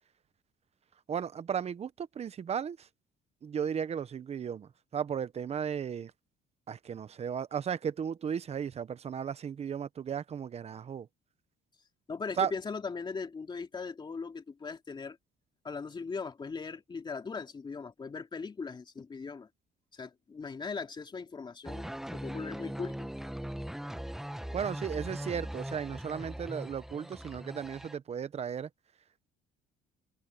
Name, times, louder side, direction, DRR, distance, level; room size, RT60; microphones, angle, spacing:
voice 1, 1.1-2.8 3.4-6.1 6.7-11.1 12.4-12.5 24.5-28.7, right 7 dB, 40° right, 0.9 m, -35 dB
voice 2, 12.1-15.2 15.6-19.5 19.9-23.1, left 5 dB, 25° left, 2.6 m, -39 dB
sound 1, 21.7-28.0, equal, ahead, 1.2 m, -40 dB
cardioid pair, 110°, 17 cm